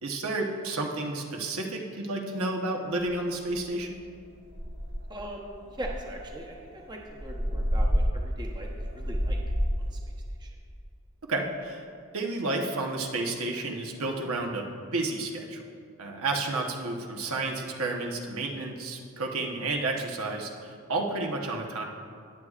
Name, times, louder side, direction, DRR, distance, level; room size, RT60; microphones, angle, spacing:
voice 1, 0.0-4.0 11.2-11.8 12.1-15.6 16.0-21.8, right 2 dB, 75° right, 1 dB, 1.1 m, -31 dB
sound 1, 3.1-3.2 3.6-3.8 4.2-4.3 4.5-5.2 5.8-10.0, equal, 55° right, 2.2 m, -29 dB
voice 2, 5.1-9.4 9.9-10.0 10.4-10.5, right 1 dB, 20° right, 0 dB, 0.9 m, -40 dB
19.5 x 7.9 x 2.5 m, 2.3 s
head